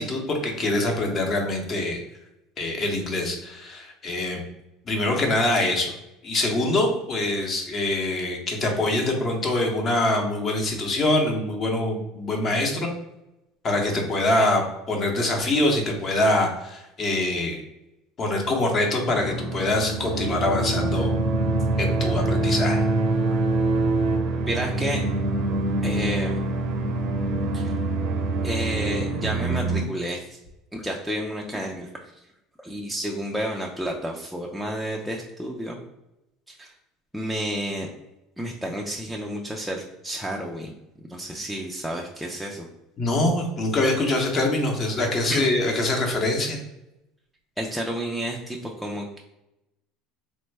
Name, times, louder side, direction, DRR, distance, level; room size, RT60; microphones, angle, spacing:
voice 1, 0.0-2.0 2.6-4.4 4.9-5.9 6.2-12.9 13.6-17.6 18.2-21.2 21.8-22.8 43.0-46.6, left 2 dB, 35° left, 2 dB, 0.8 m, -24 dB
sound 1, 19.0-29.8, right 2 dB, 60° right, 0.5 m, -25 dB
voice 2, 24.4-25.1 25.8-26.4 27.5-27.8 28.4-30.4 30.7-32.2 32.6-35.8 36.5-36.7 37.1-37.9 38.4-40.7 41.1-42.7 45.3-45.5 47.6-49.2, equal, ahead, -2 dB, 0.4 m, -31 dB
3.3 x 2.1 x 3.2 m, 0.91 s
supercardioid pair, 125°, 0 cm